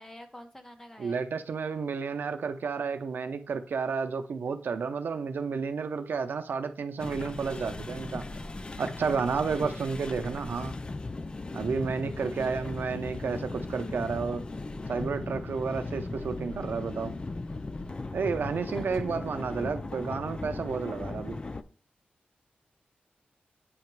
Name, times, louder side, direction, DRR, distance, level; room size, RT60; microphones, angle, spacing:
voice 1, 0.0-1.2 9.4-9.9 12.2-12.6 18.7-18.8, left 1 dB, 15° left, 0.9 m, -48 dB
voice 2, 1.0-8.3 8.8-10.8 11.5-14.5 14.9-17.1 18.1-21.4, right 5 dB, 80° right, 0.5 m, -31 dB
sound 1, 7.0-21.6, left 3 dB, 30° left, 0.4 m, -37 dB
8.5 x 2.9 x 4.6 m
wide cardioid pair, 110°, 3 cm